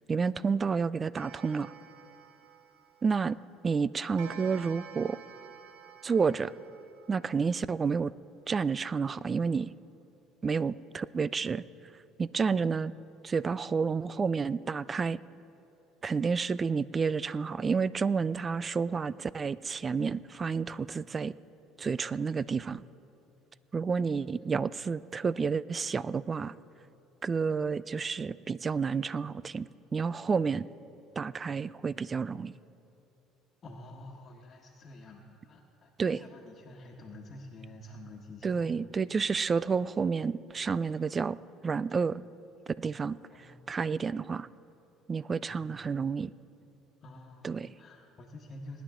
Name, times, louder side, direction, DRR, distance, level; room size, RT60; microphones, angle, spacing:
voice 1, 0.1-1.7 3.0-3.4 3.6-5.2 6.0-6.5 7.1-8.1 8.5-9.7 10.4-11.6 12.2-12.9 13.2-15.2 16.0-21.3 21.8-22.8 23.7-26.5 27.2-30.7 31.2-32.5 36.0-36.2 38.4-41.4 41.6-42.2 42.8-43.2 43.7-44.5 45.1-46.3 47.4-47.7, right 5 dB, 30° right, 19 dB, 0.3 m, -30 dB
Clock, 1.1-3.4 4.2-7.6, right 7 dB, 80° right, 0.8 m, -50 dB
voice 2, 33.6-38.7 43.3-43.7 45.5-45.6 47.0-48.8, left 1 dB, 40° left, -3 dB, 1.4 m, -49 dB
19.5 x 10.5 x 3.7 m, 2.8 s
supercardioid pair, 95°, 0 cm